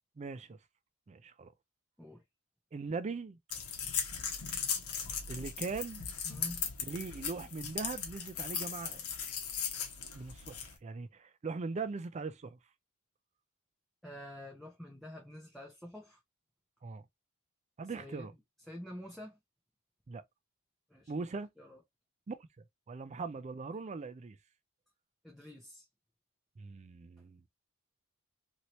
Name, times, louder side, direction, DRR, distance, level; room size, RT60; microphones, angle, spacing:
voice 1, 0.2-0.6 1.1-1.5 2.7-3.4 5.3-6.0 6.8-9.0 10.1-12.6 16.8-17.0 17.8-18.3 20.1-20.2 21.1-21.5 22.3-22.4 22.9-24.4 26.6-27.4, right 4 dB, 30° right, 0.3 m, -40 dB
sound 1, 3.5-10.7, left 7 dB, 75° left, 0.9 m, -38 dB
voice 2, 6.2-6.6 14.0-16.2 18.0-18.3 18.7-19.4 20.9-21.1 21.6-21.8 25.2-25.8, left 1 dB, ahead, 0.7 m, -47 dB
2.8 x 2.8 x 3.0 m
head